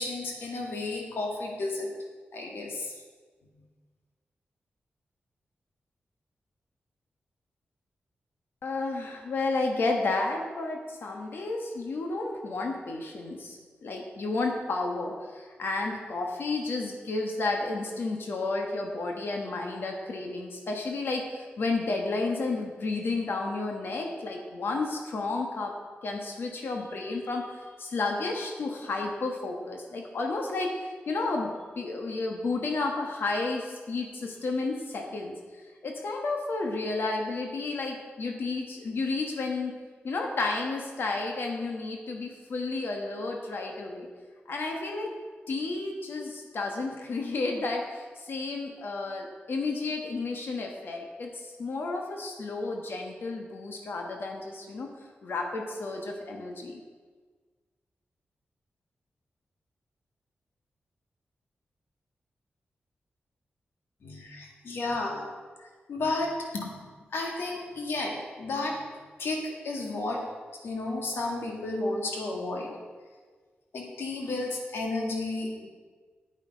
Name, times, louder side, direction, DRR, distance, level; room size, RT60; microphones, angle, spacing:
voice 1, 0.0-1.9 2.3-2.9 64.0-65.3 65.6-66.8 67.1-70.3 70.6-72.7 73.7-75.7, left 2 dB, 85° left, 0 dB, 2.0 m, -32 dB
voice 2, 8.6-25.8 26.0-35.4 35.8-39.7 40.0-44.1 44.5-45.1 45.5-54.9 55.2-56.8, left 3 dB, 70° left, 2 dB, 1.3 m, -32 dB
9.4 x 9.0 x 5.1 m, 1.5 s
wide cardioid pair, 105°, 4 cm